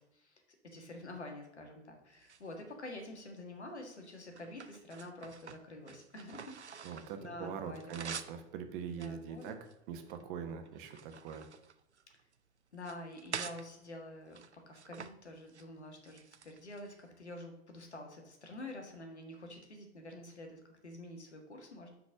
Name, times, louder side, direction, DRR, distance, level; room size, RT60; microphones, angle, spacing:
voice 1, 0.0-8.1 8.8-9.6 12.7-21.9, left 1 dB, 85° left, 3 dB, 1.6 m, -48 dB
sound 1, 2.1-3.1 3.7-7.2 7.5-8.4 8.9-10.2 10.7-12.3 12.7-13.6 14.3-15.1 15.4-15.7 16.0-17.0, right 6 dB, 90° right, 0.5 m, -47 dB
voice 2, 6.8-9.6 9.9-11.5, right 7 dB, 50° right, 7 dB, 1.2 m, -43 dB
6.2 x 4.7 x 6.2 m, 0.85 s
figure-of-eight pair, 80°, 33 cm